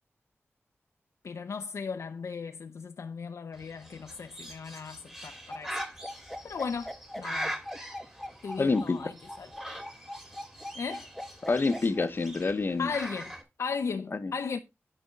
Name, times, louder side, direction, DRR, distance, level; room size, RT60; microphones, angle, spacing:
voice 1, 1.2-5.8 6.4-6.9 7.2-7.5 8.4-9.5 10.7-11.1 12.8-14.6, left 5 dB, 90° left, 0.6 m, -36 dB
Bird, 3.5-13.4, equal, 10° right, 2.3 m, -42 dB
sound 1, 5.5-12.1, left 1 dB, 5° left, 1.0 m, -40 dB
voice 2, 8.6-9.0 11.4-12.9 14.1-14.3, left 3 dB, 45° left, 0.8 m, -27 dB
10.5 x 5.0 x 5.0 m
wide cardioid pair, 115°, 5 cm